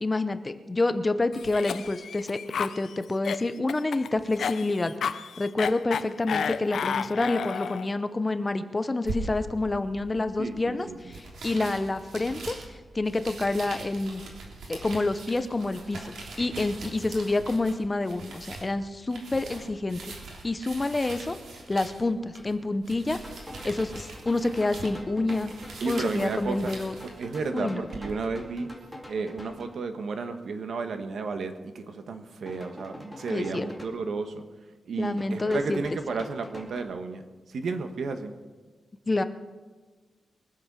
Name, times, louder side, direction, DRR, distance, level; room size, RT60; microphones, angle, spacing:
voice 1, 0.0-4.9 5.4-10.9 11.4-12.6 12.9-14.2 14.7-20.1 20.4-21.4 21.7-23.2 23.6-25.5 25.9-26.9 27.5-27.8 33.3-33.7 35.0-35.8 39.1-39.2, left 2 dB, 20° left, 11 dB, 0.7 m, -28 dB
Cough, 1.3-7.9, left 7 dB, 70° left, 0.5 m, -32 dB
sound 1, 9.0-28.1, right 3 dB, 85° right, 3.4 m, -42 dB
voice 2, 10.4-11.1 25.8-26.7 27.2-28.7 29.1-34.4 34.9-38.3, right 4 dB, 65° right, 7 dB, 1.3 m, -32 dB
sound 2, 23.2-29.7 32.5-33.8 35.2-36.9, left 1 dB, ahead, 2.4 m, -45 dB
23.0 x 7.9 x 6.2 m, 1.4 s
wide cardioid pair, 150°, 0 cm